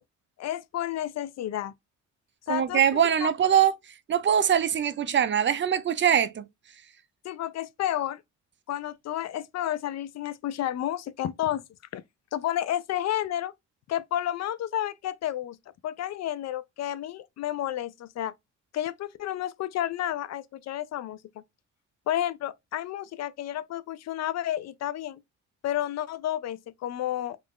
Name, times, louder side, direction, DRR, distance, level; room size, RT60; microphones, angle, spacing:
voice 1, 0.4-1.7 2.5-3.3 7.2-8.2 8.7-11.6 11.9-12.0 12.3-13.5 13.9-15.6 15.8-18.3 18.7-21.2 22.1-25.2 25.6-27.4, left 12 dB, 60° left, 0.4 m, -31 dB
voice 2, 2.5-3.7 4.1-6.4, right 9 dB, 40° right, 0.5 m, -22 dB
3.1 x 2.5 x 3.5 m
cardioid pair, 90°, 30 cm